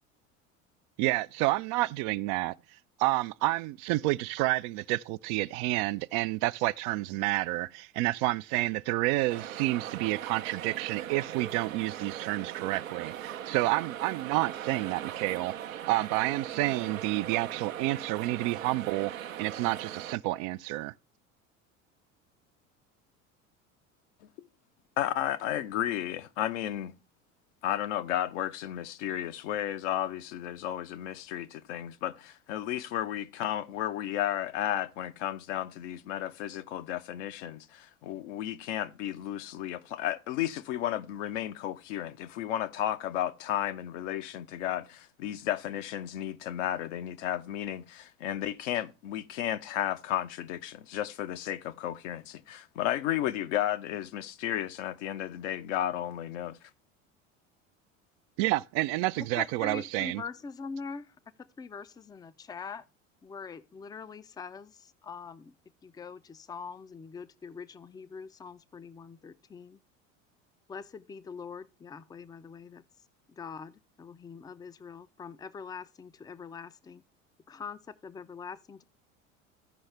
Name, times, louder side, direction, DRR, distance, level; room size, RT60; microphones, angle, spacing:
voice 1, 1.0-2.6 3.0-15.5 15.9-19.1 19.4-20.9 58.4-60.2, right 18 dB, 50° right, 0.4 m, -29 dB
sound 1, 9.3-20.1, right 10 dB, 85° right, 0.7 m, -40 dB
voice 2, 25.0-26.9 27.6-56.6, left 12 dB, 65° left, 0.9 m, -33 dB
voice 3, 59.4-61.1 61.6-62.8 63.2-65.5 65.8-69.8 70.7-72.8 73.3-77.0 77.5-78.8, left 5 dB, 10° left, 0.4 m, -43 dB
14.5 x 5.5 x 3.3 m
hypercardioid pair, 70°, 39 cm